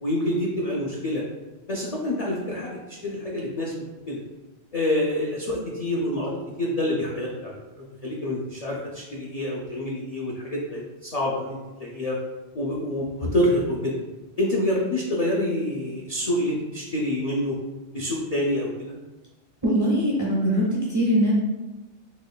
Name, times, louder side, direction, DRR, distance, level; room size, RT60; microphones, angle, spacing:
voice 1, 0.0-1.2 1.7-4.2 4.7-12.2 12.5-14.0 14.4-17.5 17.9-18.9, left 1 dB, 50° left, -4 dB, 0.4 m, -27 dB
voice 2, 19.6-21.3, equal, 20° right, -4 dB, 0.6 m, -22 dB
4.2 x 3.0 x 2.2 m, 1.1 s
omnidirectional pair, 1.2 m